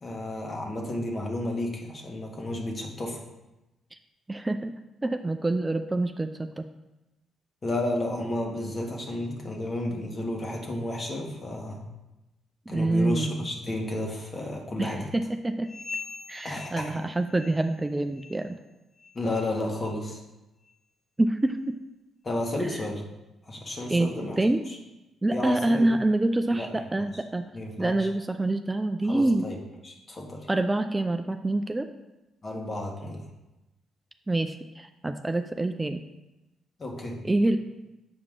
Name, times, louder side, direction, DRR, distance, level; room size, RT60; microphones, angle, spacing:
voice 1, 0.0-3.2 7.6-11.8 12.7-15.1 16.4-16.9 19.1-20.2 22.2-23.0 23.4-24.4 24.7-24.8 25.3-25.9 26.6-26.7 27.5-28.1 29.0-29.6 29.8-30.5 32.4-33.2 36.8-37.2, left 1 dB, 40° left, 0 dB, 1.6 m, -32 dB
voice 2, 4.3-4.7 5.0-6.6 12.7-13.5 14.8-15.7 16.3-18.6 21.2-21.7 23.9-24.6 25.2-27.4 27.8-29.5 30.5-31.9 34.3-36.0 37.2-37.6, right 2 dB, 20° right, 7 dB, 0.4 m, -26 dB
sound 1, 15.6-17.9 18.1-18.5 19.0-19.2 19.8-20.0 20.6-20.7 21.5-21.6, left 4 dB, 70° left, 1.5 m, -42 dB
7.1 x 4.8 x 3.7 m, 1.0 s
supercardioid pair, 60°, 0 cm